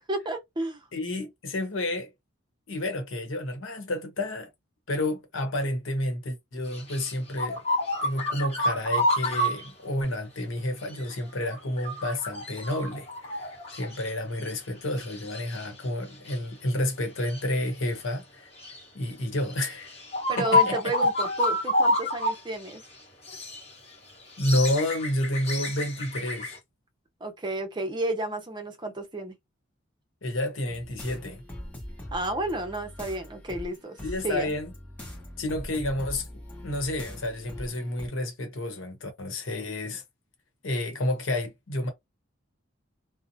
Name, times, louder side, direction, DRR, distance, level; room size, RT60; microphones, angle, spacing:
voice 1, 0.0-0.9 20.3-22.8 27.2-29.4 32.1-34.0 34.2-34.5, right 2 dB, 20° right, 0.6 m, -31 dB
voice 2, 0.9-2.1 2.7-4.5 4.9-7.6 8.0-18.5 18.9-20.0 20.4-20.8 24.4-26.5 30.2-31.4 34.0-34.7 35.4-36.3 36.6-40.0 40.6-41.9, left 1 dB, 80° left, 0.9 m, -30 dB
sound 1, 6.7-9.7 11.0-11.2 11.5-14.1 14.4-14.5 15.0-15.7 16.3-16.4 17.2-17.4 18.6-18.8 19.5-19.6 19.9-22.4 22.7-22.8 23.2-23.6 24.2-26.6, left 1 dB, 30° left, 1.1 m, -28 dB
sound 2, 30.7-38.1, left 1 dB, 10° left, 0.9 m, -42 dB
2.7 x 2.1 x 2.6 m
head